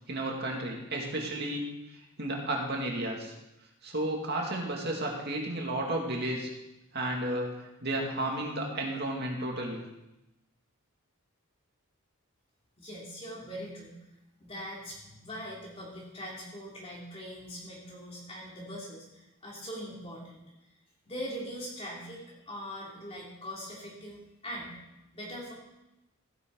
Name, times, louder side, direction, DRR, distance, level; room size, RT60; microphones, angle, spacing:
voice 1, 0.1-1.6 2.2-3.3 3.8-6.5 6.9-7.5 7.8-9.8, right 1 dB, 50° right, 0 dB, 2.4 m, -32 dB
voice 2, 12.8-13.9 14.4-20.4 21.1-24.8 25.1-25.5, equal, 25° left, -4 dB, 2.9 m, -41 dB
15.5 x 11.0 x 4.0 m, 0.94 s
head